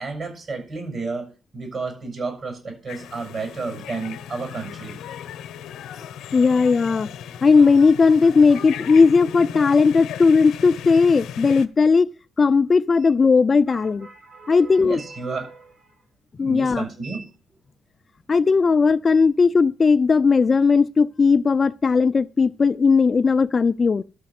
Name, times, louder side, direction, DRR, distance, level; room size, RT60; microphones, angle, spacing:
voice 1, 0.0-5.0 13.7-15.9 16.4-17.3, right 4 dB, 50° right, 6.7 m, -32 dB
sound 1, 2.9-11.7, left 9 dB, 80° left, 0.9 m, -36 dB
voice 2, 6.3-7.1 7.4-12.1 12.4-14.1 14.5-15.0 16.4-16.8 18.3-24.0, left 4 dB, 35° left, 0.4 m, -17 dB
12.5 x 5.2 x 7.7 m
cardioid pair, 90°, 0 cm